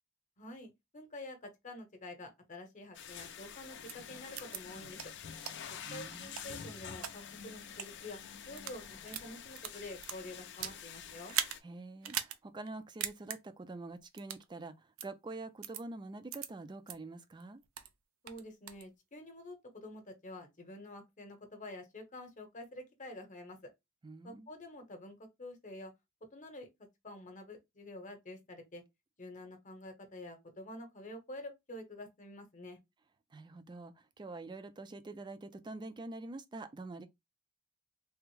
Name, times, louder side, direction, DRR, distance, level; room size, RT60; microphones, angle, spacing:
voice 1, 0.4-5.0 5.9-8.2 8.5-11.4 18.2-23.6 24.2-25.9 26.3-26.7 27.0-28.8 29.2-32.8, left 1 dB, 40° left, 0.8 m, -48 dB
sound 1, 2.9-11.6, left 7 dB, 60° left, 0.5 m, -48 dB
sound 2, 3.9-4.0 4.4-4.6 5.0-5.1 5.5-5.6 6.1-7.1 7.7-7.9 8.4-8.8 9.1-10.8 11.3-11.6 12.0-12.4 12.7-12.8 13.0-13.4 14.2-14.4 15.0-15.1 15.6-15.8 16.3-16.5 16.9-17.0 17.4-17.9 18.3-18.8, right 10 dB, 85° right, 0.5 m, -39 dB
voice 2, 5.9-6.3 11.6-17.6 24.0-24.5 33.3-37.1, right 2 dB, 20° right, 0.4 m, -46 dB
3.4 x 2.0 x 3.1 m
head